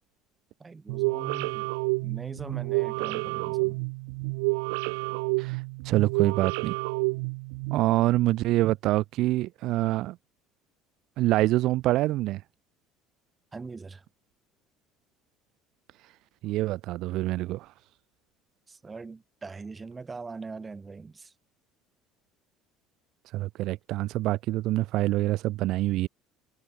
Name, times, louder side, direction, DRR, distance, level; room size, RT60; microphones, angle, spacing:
voice 1, 0.6-1.7 2.0-3.8 13.5-14.0 18.7-21.3, right 4 dB, 25° right, 2.1 m, -41 dB
sound 1, 0.9-7.8, right 30 dB, 80° right, 1.0 m, -29 dB
voice 2, 5.4-6.8 7.7-10.2 11.2-12.4 16.4-17.7 23.3-26.1, right 17 dB, 65° right, 0.4 m, -26 dB
supercardioid pair, 85°, 0 cm